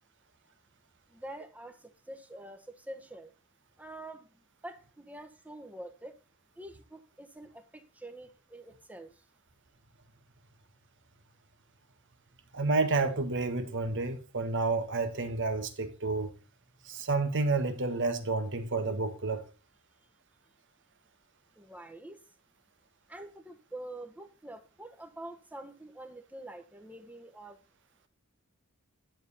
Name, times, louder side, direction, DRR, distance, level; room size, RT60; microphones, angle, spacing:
voice 1, 1.1-3.3 3.8-4.3 4.6-6.1 6.6-9.1 21.6-22.2 23.1-27.6, right 1 dB, 5° right, 1.3 m, -46 dB
voice 2, 12.5-16.3 16.8-19.4, right 3 dB, 60° right, 1.6 m, -30 dB
11.0 x 7.3 x 4.1 m
head